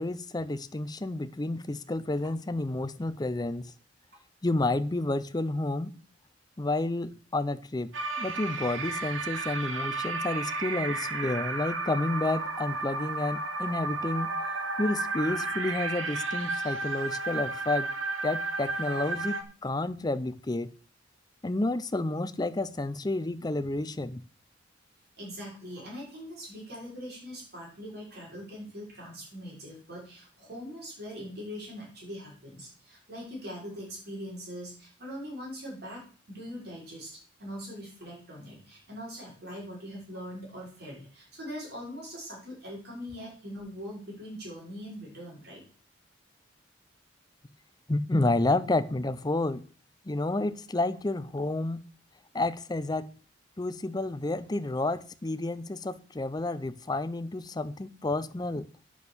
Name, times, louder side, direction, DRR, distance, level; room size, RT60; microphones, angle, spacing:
voice 1, 0.0-3.7 4.4-6.0 6.6-7.9 8.2-14.3 14.8-17.9 18.2-20.7 21.4-24.2 47.9-49.6 50.0-51.8 52.3-53.1 53.6-58.7, left 2 dB, 20° left, 0.5 m, -30 dB
sound 1, 7.9-19.4, right 3 dB, 90° right, 1.4 m, -33 dB
voice 2, 25.2-45.6, equal, 55° right, 5.2 m, -42 dB
8.8 x 6.3 x 7.0 m
head